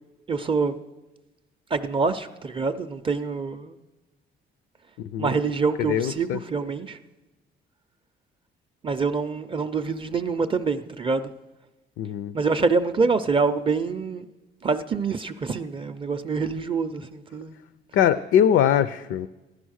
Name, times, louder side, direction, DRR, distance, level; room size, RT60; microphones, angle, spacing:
voice 1, 0.3-0.7 1.7-3.7 5.2-7.0 8.8-11.2 12.3-14.2 14.6-17.6, right 4 dB, 25° right, 9 dB, 0.4 m, -25 dB
voice 2, 5.0-5.3 5.8-6.4 12.0-12.3 17.9-19.3, left 9 dB, 75° left, 14 dB, 0.5 m, -22 dB
15.5 x 11.0 x 6.4 m, 1.1 s
cardioid pair, 155°, 21 cm